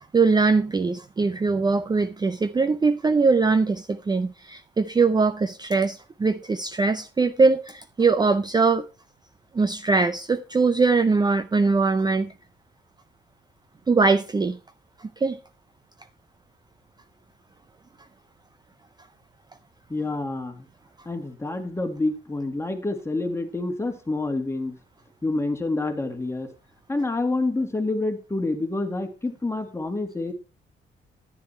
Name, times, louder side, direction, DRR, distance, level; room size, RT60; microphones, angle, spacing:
voice 1, 0.1-8.9 9.5-12.3 13.9-14.6 15.0-15.4, right 4 dB, 20° right, 0.5 m, -21 dB
voice 2, 19.9-20.6 21.1-24.8 25.2-26.5 26.9-30.3, left 2 dB, 15° left, 1.8 m, -27 dB
10.5 x 9.7 x 3.2 m
cardioid pair, 90°, 20 cm